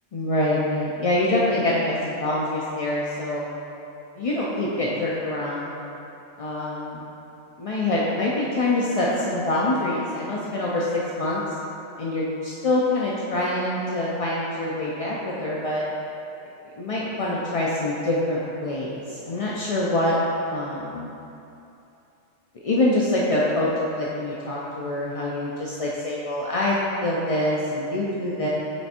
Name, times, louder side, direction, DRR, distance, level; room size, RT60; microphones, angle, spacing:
voice 1, 0.1-3.4 4.2-5.7 6.4-7.0 7.6-11.4 12.0-15.9 16.8-20.2 20.5-21.1 22.5-28.5, left 1 dB, 50° left, -5 dB, 0.4 m, -25 dB
7.3 x 3.4 x 4.3 m, 2.8 s
omnidirectional pair, 1.3 m